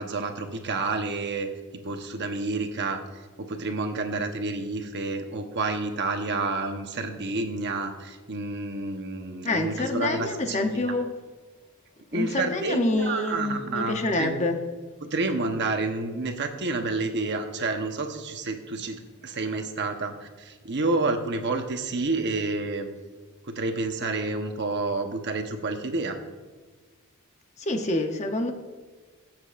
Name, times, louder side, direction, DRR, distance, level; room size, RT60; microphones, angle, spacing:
voice 1, 0.0-1.5 1.8-3.0 3.4-10.9 12.1-14.4 15.0-22.9 23.5-26.2, right 3 dB, 50° right, 1.0 m, -29 dB
voice 2, 9.4-11.1 12.1-14.6 27.6-28.5, left 2 dB, 30° left, 0.8 m, -27 dB
22.5 x 7.6 x 2.5 m
head